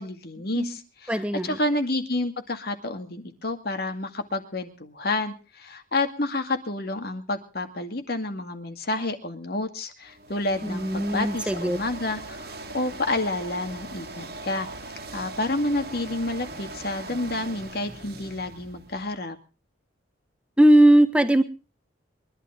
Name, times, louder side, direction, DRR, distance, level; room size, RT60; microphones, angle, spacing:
voice 1, 0.0-14.7 15.1-19.4, left 2 dB, 55° left, 6 dB, 2.2 m, -29 dB
voice 2, 1.1-1.6 10.6-11.8 20.6-21.4, right 1 dB, 5° right, 9 dB, 1.2 m, -19 dB
sound 1, 10.1-19.2, right 2 dB, 55° right, 2.1 m, -40 dB
23.5 x 12.0 x 3.8 m, 0.35 s
head